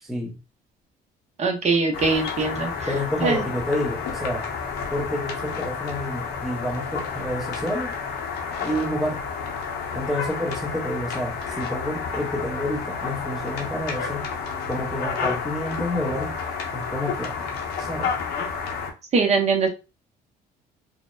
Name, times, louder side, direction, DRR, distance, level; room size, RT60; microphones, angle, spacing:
voice 1, 0.0-0.4 2.9-4.5 4.9-7.9 8.6-9.2 9.9-14.3 14.7-16.4 16.7-18.2, equal, ahead, 0.5 m, -29 dB
voice 2, 1.4-2.9 3.2-3.4 19.1-19.7, right 4 dB, 40° right, 0.6 m, -22 dB
sound 1, 1.9-18.9, left 5 dB, 75° left, 0.7 m, -30 dB
2.7 x 2.0 x 2.2 m
cardioid pair, 110°, 17 cm